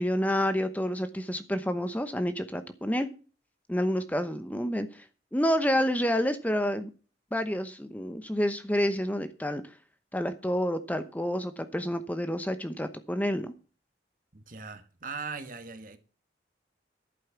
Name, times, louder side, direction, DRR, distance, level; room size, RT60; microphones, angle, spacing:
voice 1, 0.0-3.1 3.7-5.0 5.3-6.9 7.3-9.6 10.1-13.5, equal, 10° left, 0.9 m, -29 dB
voice 2, 14.3-16.0, right 5 dB, 45° right, 1.7 m, -39 dB
11.5 x 8.8 x 5.9 m
head